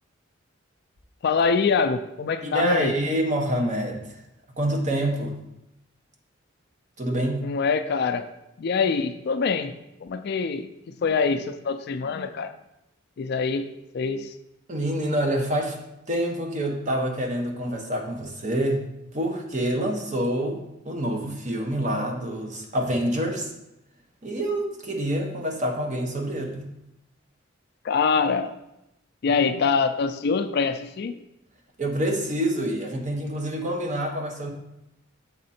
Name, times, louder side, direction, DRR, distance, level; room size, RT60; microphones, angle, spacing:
voice 1, 1.2-2.9 7.4-8.3 8.6-9.7 10.0-10.7 11.0-12.5 13.2-14.3 27.8-28.5 29.2-31.2, left 5 dB, 55° left, 10 dB, 0.4 m, -24 dB
voice 2, 2.4-4.2 4.6-5.3 7.0-7.5 14.7-15.8 16.1-18.8 19.1-20.6 20.8-23.5 24.2-26.7 31.8-34.5, right 1 dB, 35° right, 1 dB, 1.0 m, -27 dB
7.6 x 3.6 x 4.2 m, 0.87 s
head